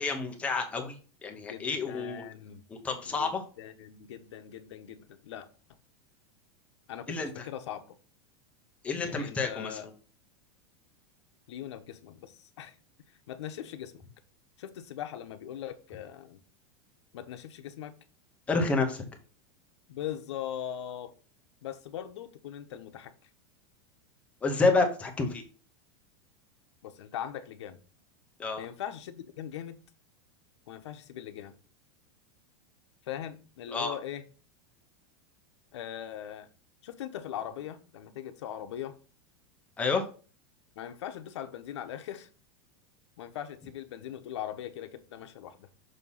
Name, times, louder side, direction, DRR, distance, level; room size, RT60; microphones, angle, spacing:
voice 1, 0.0-2.2 2.7-3.4 7.1-7.5 8.8-9.8 18.5-19.1 24.4-25.4 28.4-28.7 33.7-34.0 39.8-40.0, left 3 dB, 10° left, 4 dB, 0.7 m, -29 dB
voice 2, 1.5-2.6 3.0-5.5 6.9-7.1 7.4-8.0 9.0-9.9 11.5-12.8 13.3-14.0 14.6-16.4 17.1-17.9 19.9-21.1 21.6-23.1 26.8-27.8 28.6-29.8 30.7-31.6 33.0-34.2 35.7-36.5 36.8-38.9 40.8-42.3 43.2-45.7, left 10 dB, 80° left, 8 dB, 0.9 m, -40 dB
6.5 x 2.8 x 5.4 m, 0.37 s
supercardioid pair, 180°, 14 cm